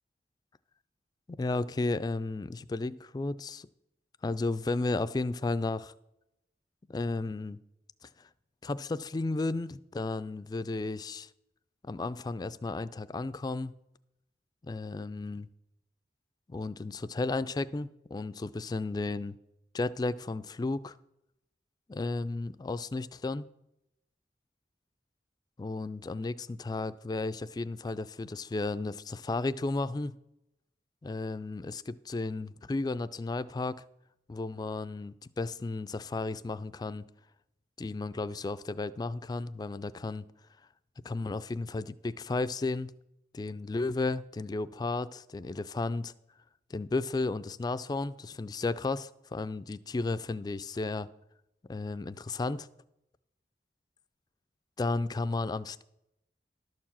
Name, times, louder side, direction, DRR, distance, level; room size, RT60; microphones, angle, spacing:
voice 1, 1.4-3.7 4.2-5.9 6.9-7.6 8.2-8.3 8.6-11.3 11.8-13.8 14.6-15.5 16.5-19.4 19.7-21.0 21.9-23.4 25.6-30.1 31.0-33.8 34.3-37.0 37.8-40.2 41.0-42.9 43.3-46.1 46.7-51.1 51.7-52.7 54.8-55.8, left 3 dB, 25° left, 0.3 m, -33 dB
12.0 x 4.7 x 7.3 m
head